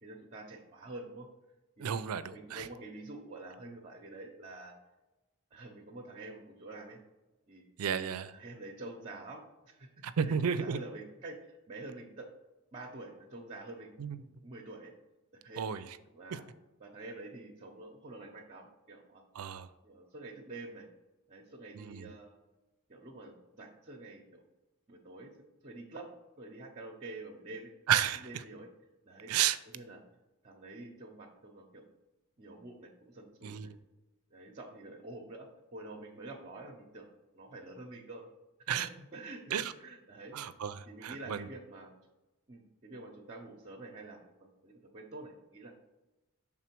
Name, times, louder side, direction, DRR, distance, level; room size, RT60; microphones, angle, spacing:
voice 1, 0.0-1.3 1.8-2.0 2.3-4.7 5.5-7.0 7.5-7.6 8.3-9.9 10.2-12.3 12.7-14.9 15.3-15.6 16.1-16.4 16.8-19.2 19.8-20.9 21.3-22.4 22.9-24.4 24.9-25.3 25.6-26.1 26.4-27.7 28.2-28.7 29.0-29.3 29.7-30.0 30.4-31.8 32.4-33.7 34.3-37.1 37.3-38.2 38.6-40.3 40.9-41.9 42.5-45.7, right 2 dB, 35° right, 1 dB, 0.7 m, -47 dB
voice 2, 1.8-2.7 7.8-8.3 10.0-10.8 14.0-14.2 15.6-15.8 19.4-19.7 21.8-22.1 27.9-28.4 29.3-29.6 33.4-33.8 38.7-38.9 39.5-39.7 40.3-41.5, right 8 dB, 85° right, 13 dB, 0.4 m, -32 dB
6.1 x 3.7 x 4.5 m, 1.1 s
head